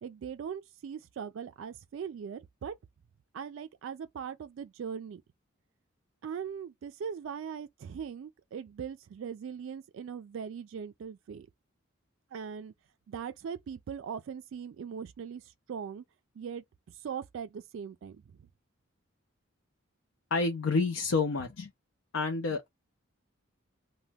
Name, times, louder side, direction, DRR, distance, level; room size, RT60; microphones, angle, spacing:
voice 1, 0.0-2.7 3.3-5.2 6.2-11.5 12.3-12.7 13.1-16.0 16.4-18.5, right 7 dB, 70° right, 0.3 m, -40 dB
voice 2, 20.3-21.7 22.1-22.7, left 4 dB, 75° left, 0.5 m, -29 dB
2.8 x 2.1 x 3.3 m
head